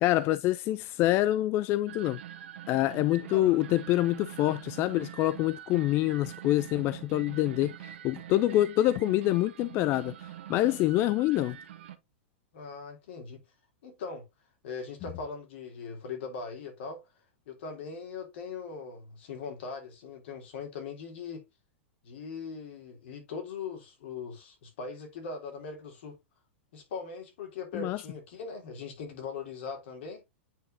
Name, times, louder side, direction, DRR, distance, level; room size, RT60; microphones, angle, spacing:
voice 1, 0.0-2.2 2.7-11.6 27.7-28.0, left 15 dB, 40° left, 0.3 m, -26 dB
sound 1, 1.9-12.0, right 11 dB, 70° right, 1.0 m, -45 dB
voice 2, 12.5-13.4 13.8-14.2 14.6-17.0 17.5-21.4 22.0-26.2 26.7-30.2, left 5 dB, 65° left, 2.9 m, -40 dB
9.0 x 4.6 x 2.6 m
hypercardioid pair, 110°, 7 cm